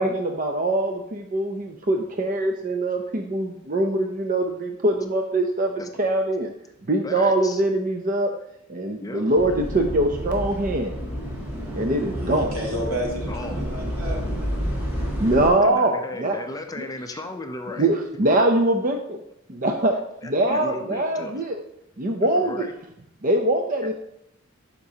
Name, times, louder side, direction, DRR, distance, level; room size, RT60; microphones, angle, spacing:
voice 1, 0.0-6.5 6.9-8.3 8.7-10.9 11.7-12.5 15.2-15.9 16.2-16.4 17.8-19.2 19.5-20.0 20.2-21.6 22.0-22.7 23.2-23.9, right 1 dB, 40° right, 4 dB, 0.5 m, -23 dB
voice 2, 7.0-7.6 9.0-9.2 13.3-13.6 15.6-17.9 20.2-21.4 22.2-22.7 23.8-23.9, left 2 dB, 15° left, 6 dB, 0.5 m, -35 dB
sound 1, 9.4-15.5, equal, 10° right, 2.2 m, -30 dB
voice 3, 12.1-14.6, equal, 85° right, -2 dB, 2.2 m, -32 dB
11.5 x 5.2 x 2.8 m, 0.76 s
head